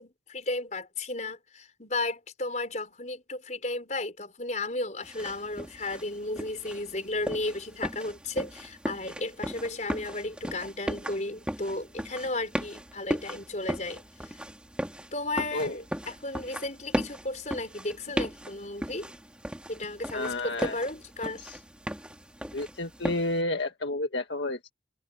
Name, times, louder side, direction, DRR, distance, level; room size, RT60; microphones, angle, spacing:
voice 1, 0.0-14.4 15.1-19.1 19.7-21.4, left 2 dB, 40° left, 5.1 m, -34 dB
sound 1, 5.0-23.4, equal, 5° right, 2.4 m, -37 dB
voice 2, 15.5-15.8 20.1-20.8 21.4-21.6 22.5-24.7, left 2 dB, 75° left, 1.7 m, -31 dB
head